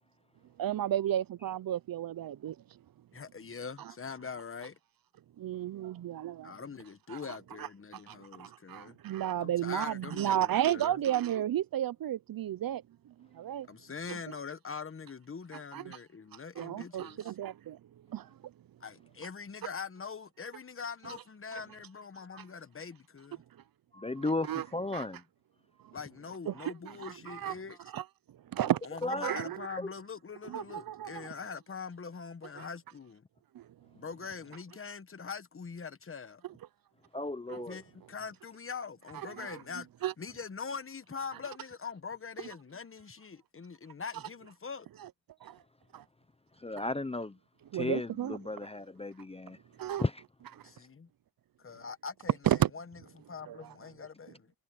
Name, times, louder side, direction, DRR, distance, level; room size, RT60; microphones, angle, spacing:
voice 1, 0.6-2.6 5.4-6.5 7.1-7.2 7.6-7.7 8.1-13.7 14.1-14.2 15.7-16.0 16.6-17.8 18.1-18.3 24.5-24.7 24.9-25.1 25.8-25.9 26.5-26.7 27.0-27.5 27.9-28.0 28.5-28.8 29.1-29.6 30.4-31.3 32.6-32.7 33.5-33.7 37.5-37.6 39.3-39.6 40.0-40.1 45.4-45.6 45.9-46.0 47.7-48.4 49.8-50.0 52.5-52.7 53.5-53.7, right 11 dB, 60° right, 0.6 m, -33 dB
voice 2, 3.1-4.8 6.4-9.0 9.4-11.0 13.7-17.3 18.8-23.4 25.9-27.8 28.8-33.3 33.9-36.4 37.7-39.9 40.2-44.9 50.6-51.1 51.6-54.5, left 5 dB, 30° left, 1.2 m, -43 dB
voice 3, 23.9-25.2 29.0-29.3 29.8-29.9 37.1-37.8 46.6-47.4 47.7-49.6 50.0-50.2, left 2 dB, 15° left, 0.7 m, -34 dB
cardioid pair, 100°, 40 cm